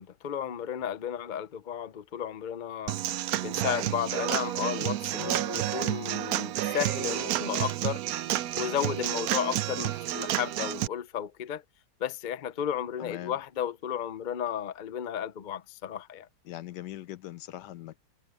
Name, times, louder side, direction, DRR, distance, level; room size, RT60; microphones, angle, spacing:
voice 1, 0.0-3.0 3.4-8.0 8.5-11.6 12.0-16.3, left 9 dB, 55° left, 0.5 m, -33 dB
Human voice / Acoustic guitar / Drum, 2.9-10.9, right 13 dB, 70° right, 1.0 m, -30 dB
voice 2, 5.1-5.5 13.0-13.4 16.4-18.1, left 14 dB, 80° left, 1.3 m, -41 dB
omnidirectional pair, 1.8 m